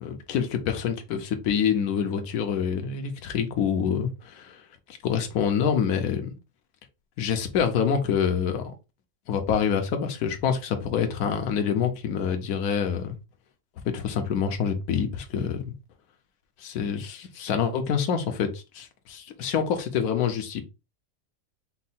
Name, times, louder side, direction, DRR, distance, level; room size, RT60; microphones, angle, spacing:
voice 1, 0.0-4.6 4.9-6.4 7.2-8.6 9.3-13.2 13.9-15.7 16.6-20.6, left 7 dB, 70° left, 1.2 m, -26 dB
4.6 x 2.1 x 4.1 m
omnidirectional pair, 1.7 m